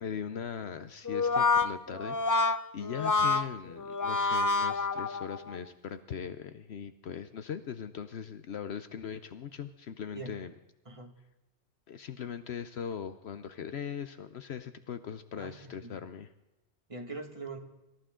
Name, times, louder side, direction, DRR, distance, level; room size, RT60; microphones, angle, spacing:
voice 1, 0.0-10.5 11.9-16.3, left 7 dB, 65° left, 11 dB, 1.0 m, -40 dB
Brass instrument, 1.0-5.6, left 3 dB, 30° left, 0.4 m, -28 dB
voice 2, 15.3-16.1 16.9-17.6, right 3 dB, 25° right, 4 dB, 1.8 m, -42 dB
26.5 x 14.5 x 3.8 m, 1.0 s
omnidirectional pair, 1.2 m